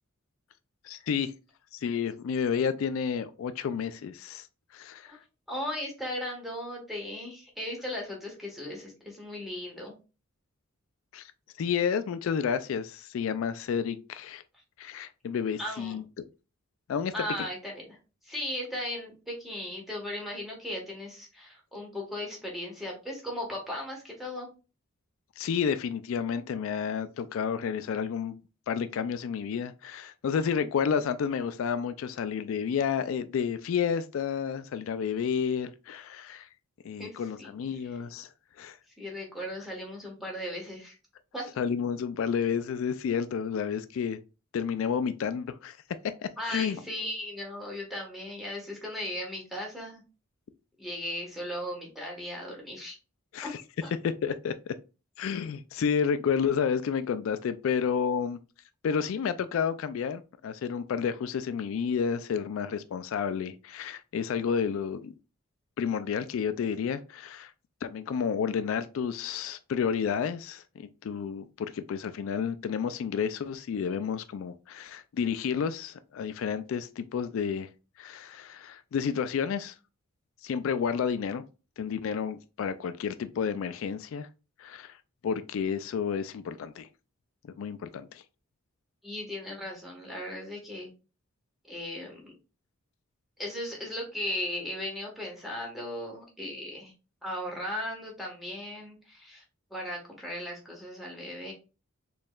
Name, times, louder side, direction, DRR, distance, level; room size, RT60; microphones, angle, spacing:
voice 1, 0.8-1.3 1.7-4.5 4.7-5.2 11.1-11.3 11.6-14.4 14.8-16.2 16.9-17.1 25.4-28.4 28.7-36.5 36.8-38.3 38.6-38.8 41.6-44.2 44.5-45.8 46.2-46.8 53.3-53.6 54.0-54.7 55.2-58.4 58.8-65.1 65.8-67.5 67.8-77.7 78.0-79.8 80.4-81.4 81.8-84.3 84.6-85.0 85.2-86.9 87.6-88.2, left 7 dB, 70° left, 0.3 m, -30 dB
voice 2, 5.5-10.0 15.6-16.0 17.1-18.0 18.2-24.5 37.0-37.5 39.0-40.9 41.3-41.5 46.4-50.0 50.8-53.0 53.4-53.5 53.8-53.9 89.0-90.9 91.7-92.3 93.4-96.9 97.2-99.4 99.7-101.5, left 1 dB, ahead, 1.2 m, -37 dB
4.3 x 3.1 x 2.3 m
head